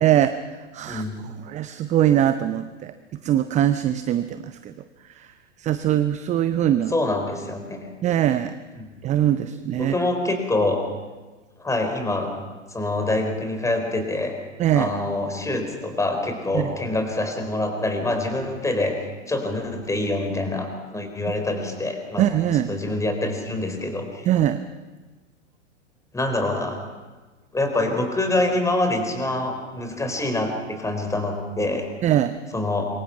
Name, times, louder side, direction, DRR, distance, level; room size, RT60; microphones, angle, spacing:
voice 1, 0.0-0.3 0.7-1.0 1.5-2.9 3.2-4.7 5.6-6.9 8.0-8.5 9.0-9.9 14.6-14.9 16.5-16.7 22.2-22.7 24.3-24.6 32.0-32.4, right 11 dB, 20° right, 12 dB, 0.7 m, -21 dB
voice 2, 0.8-1.3 6.9-7.9 8.8-8.9 9.8-10.8 11.6-12.3 12.7-14.3 14.7-22.3 22.5-24.3 26.1-26.8 27.5-31.9 32.5-32.9, left 2 dB, 10° left, 5 dB, 4.1 m, -25 dB
26.5 x 23.0 x 5.9 m, 1.3 s
figure-of-eight pair, 95°, 36 cm